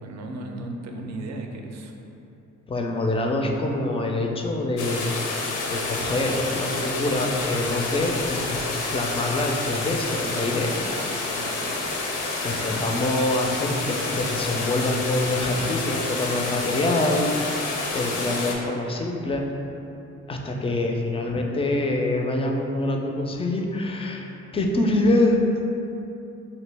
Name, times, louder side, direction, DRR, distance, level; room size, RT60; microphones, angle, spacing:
voice 1, 0.0-1.9 11.4-11.8, right 2 dB, 60° right, 3 dB, 0.5 m, -35 dB
voice 2, 2.7-5.0 5.6-8.6 8.9-10.8 12.4-19.5 20.3-25.4, left 2 dB, 20° left, 1 dB, 0.3 m, -25 dB
sound 1, 4.8-18.5, left 3 dB, 85° left, 0.6 m, -29 dB
3.0 x 2.7 x 3.3 m, 2.8 s
cardioid pair, 90°, 30 cm